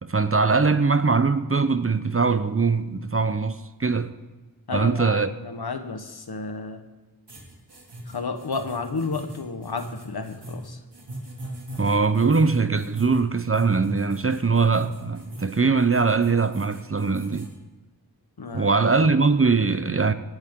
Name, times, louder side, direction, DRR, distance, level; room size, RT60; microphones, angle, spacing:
voice 1, 0.0-4.1 4.7-5.3 11.8-17.5 18.5-20.1, right 4 dB, 35° right, 0.7 m, -21 dB
voice 2, 4.7-6.8 8.1-10.8 18.4-18.7, left 4 dB, 70° left, 1.3 m, -32 dB
sound 1, 7.3-17.5, right 1 dB, 80° right, 2.7 m, -39 dB
18.0 x 11.0 x 3.8 m
wide cardioid pair, 45°, 40 cm